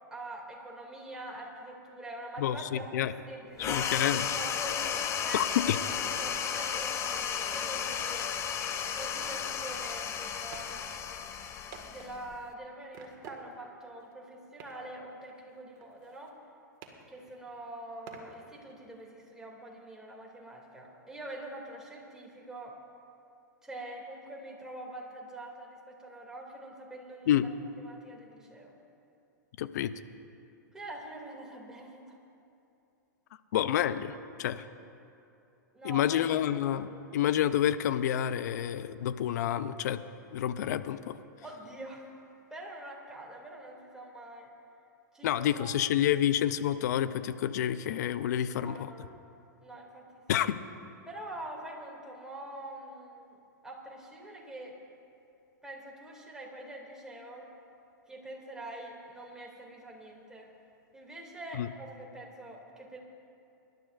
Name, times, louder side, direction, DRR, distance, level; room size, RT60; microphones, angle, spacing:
voice 1, 0.1-3.9 4.3-5.5 6.2-8.3 8.9-10.8 11.9-16.3 17.1-22.8 23.6-27.5 27.8-28.7 30.7-32.2 35.7-36.2 41.4-42.1 42.5-44.5 45.1-45.7 48.6-49.1 49.6-50.2 51.1-54.8 55.6-57.5 58.1-60.5 60.9-63.0, right 1 dB, 5° right, -2 dB, 2.6 m, -45 dB
voice 2, 2.4-3.1 3.6-4.4 5.3-5.8 27.3-27.5 29.6-29.9 33.5-34.6 35.8-40.0 40.3-41.2 45.2-48.9 50.3-50.6 61.6-61.7, left 11 dB, 60° left, 13 dB, 0.6 m, -29 dB
sound 1, 3.6-12.5, left 8 dB, 30° left, 0.8 m, -33 dB
sound 2, 10.0-10.1 10.5-10.7 11.0-11.1 11.7-12.5 12.9-13.8 14.0-14.1 14.6-15.0 15.2-16.5 16.8-17.6 18.1-19.0, right 6 dB, 40° right, 1.7 m, -51 dB
25.0 x 12.0 x 2.6 m, 2.7 s
hypercardioid pair, 105°, 10 cm